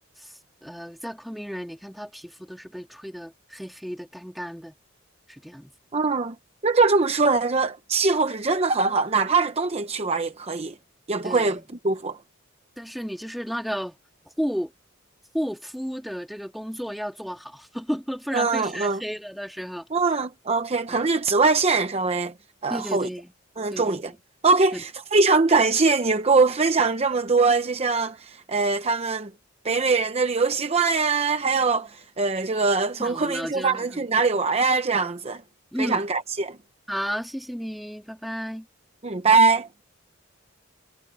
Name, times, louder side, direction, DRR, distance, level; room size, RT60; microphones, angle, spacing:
voice 1, 0.6-4.8 5.3-5.7 11.2-11.6 12.8-14.0 14.4-14.7 15.3-19.9 20.9-21.0 22.7-23.3 23.7-24.0 24.7-24.8 33.0-34.1 35.7-36.0 36.9-38.7, equal, ahead, 2.4 m, -33 dB
voice 2, 5.9-6.3 6.6-10.7 11.1-12.2 18.3-19.0 19.9-22.3 22.6-23.1 23.6-24.1 24.4-29.3 29.6-35.4 35.8-36.6 39.0-39.7, right 4 dB, 30° right, 0.8 m, -22 dB
head